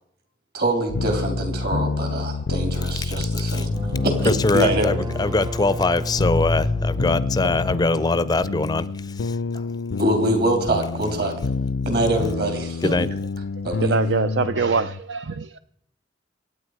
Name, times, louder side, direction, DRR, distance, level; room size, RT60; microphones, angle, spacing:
voice 1, 0.5-3.7 4.0-5.0 10.0-11.3 11.8-12.9 13.6-13.9, right 1 dB, 55° right, 5 dB, 3.2 m, -24 dB
sound 1, 0.9-15.0, left 4 dB, 75° left, 0.5 m, -27 dB
voice 2, 2.8-3.2 3.5-3.7 4.3-9.6 12.8-13.1, left 2 dB, 20° left, 16 dB, 0.4 m, -23 dB
sound 2, 3.5-9.1, equal, 25° right, 0.7 m, -33 dB
voice 3, 13.8-15.6, right 5 dB, 70° right, 12 dB, 0.5 m, -24 dB
25.5 x 9.0 x 4.8 m, 0.75 s
head